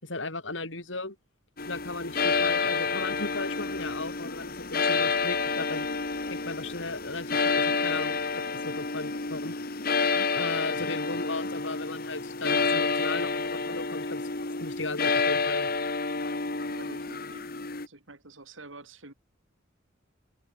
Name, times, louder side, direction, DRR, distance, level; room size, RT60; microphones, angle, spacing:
voice 1, 0.0-1.2 1.7-5.9 6.3-8.2 8.5-9.6 10.4-14.2 14.6-15.7, left 3 dB, 75° left, 7.0 m, -36 dB
sound 1, 1.6-17.9, left 4 dB, 50° left, 2.0 m, -29 dB
voice 2, 10.0-10.4 16.7-19.1, right 2 dB, 90° right, 7.2 m, -48 dB
head